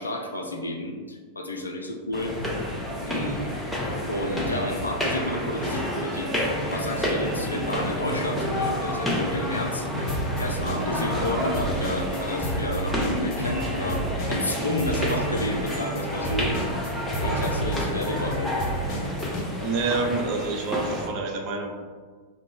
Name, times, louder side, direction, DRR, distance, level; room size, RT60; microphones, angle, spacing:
voice 1, 0.0-2.3 3.0-3.4 4.1-6.3 6.7-9.9 10.4-16.5 17.2-18.5, left 1 dB, 80° left, 2 dB, 0.3 m, -31 dB
sound 1, 2.1-21.1, equal, 5° left, 0.6 m, -30 dB
sound 2, 2.2-2.6 3.2-3.6 4.3-5.0 5.4-5.8 6.4-19.5, left 1 dB, 65° right, 0.8 m, -37 dB
sound 3, 10.1-11.3 11.5-19.5, right 2 dB, 40° left, 0.7 m, -31 dB
voice 2, 19.6-21.7, right 3 dB, 45° right, 2 dB, 0.4 m, -27 dB
2.3 x 2.0 x 3.8 m, 1.5 s
figure-of-eight pair, 90°, 0 cm